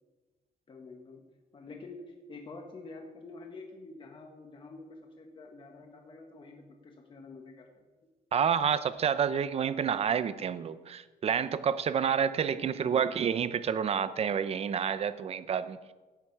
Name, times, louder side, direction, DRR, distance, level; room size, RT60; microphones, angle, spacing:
voice 1, 0.7-1.2 1.5-7.8 12.6-13.1, left 3 dB, 35° left, 2 dB, 1.5 m, -47 dB
voice 2, 8.3-15.8, right 7 dB, 40° right, 13 dB, 0.7 m, -29 dB
16.5 x 12.0 x 4.8 m, 1.3 s
cardioid pair, 155°, 15 cm